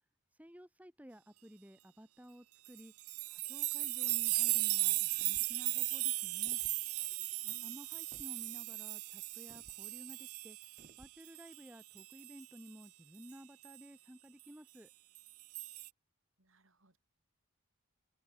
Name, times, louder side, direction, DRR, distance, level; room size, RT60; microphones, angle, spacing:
voice 1, 0.4-2.9 3.3-6.6 7.6-10.6 11.0-14.9, equal, 5° right, 2.2 m, -54 dB
sound 1, 2.7-11.0 11.3-12.4 13.6-13.7 15.2-15.9, right 22 dB, 80° right, 0.6 m, -36 dB
sound 2, 5.1-5.6 6.4-6.8 8.1-8.4 9.5-9.8 10.8-11.2, right 1 dB, 35° right, 5.1 m, -60 dB
voice 2, 7.4-7.8 16.4-17.0, right 1 dB, 60° right, 5.8 m, -63 dB
head